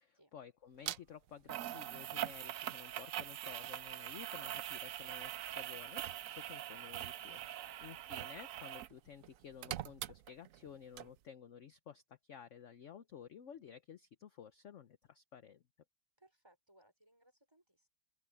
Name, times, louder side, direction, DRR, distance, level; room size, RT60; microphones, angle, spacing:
voice 1, 0.0-15.6, left 8 dB, 55° left, 0.9 m, -54 dB
sound 1, 0.9-1.0 1.5-8.9 9.2-10.7 11.0-11.1, right 12 dB, 85° right, 0.7 m, -43 dB
voice 2, 7.5-8.1 16.2-17.9, right 1 dB, 15° right, 5.9 m, -67 dB
open air
omnidirectional pair, 2.0 m